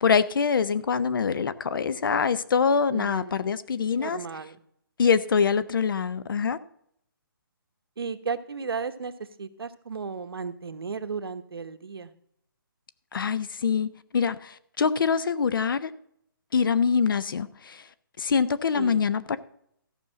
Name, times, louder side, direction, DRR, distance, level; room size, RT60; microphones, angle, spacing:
voice 1, 0.0-4.2 5.0-6.6 13.1-15.9 16.5-17.8 18.2-19.4, left 6 dB, 65° left, 0.7 m, -24 dB
voice 2, 2.9-3.4 4.0-4.6 8.0-12.1 18.7-19.0, right 5 dB, 85° right, 1.1 m, -34 dB
14.0 x 5.4 x 7.5 m
hypercardioid pair, 165°, 12 cm